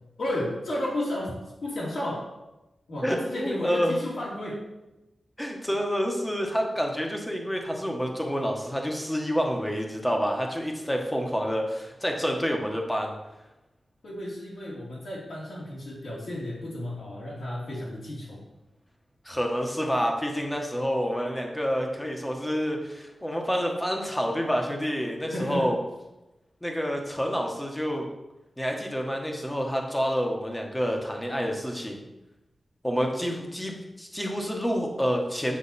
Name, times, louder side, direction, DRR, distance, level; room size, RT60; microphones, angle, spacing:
voice 1, 0.2-1.3 1.6-2.3 2.9-4.6 14.0-18.4 25.3-25.7, left 1 dB, 70° left, -7 dB, 2.6 m, -33 dB
voice 2, 3.0-3.9 5.4-13.1 19.2-25.8 26.6-28.1 28.6-32.0 32.8-35.6, equal, 5° left, 1 dB, 1.2 m, -28 dB
8.6 x 6.6 x 4.2 m, 0.99 s
wide cardioid pair, 155°, 0 cm